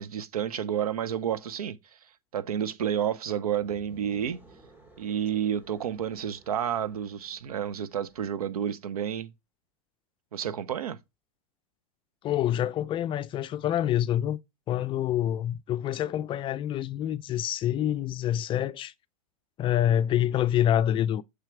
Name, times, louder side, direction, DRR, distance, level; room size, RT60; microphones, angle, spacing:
voice 1, 0.0-1.8 2.3-4.4 5.0-9.3 10.3-11.0, right 9 dB, 80° right, 0.8 m, -30 dB
sound 1, 3.6-8.6, right 2 dB, 10° right, 2.7 m, -56 dB
voice 2, 12.2-14.4 14.7-18.9 19.6-21.2, left 11 dB, 25° left, 0.4 m, -26 dB
6.5 x 4.6 x 5.8 m
hypercardioid pair, 110°, 19 cm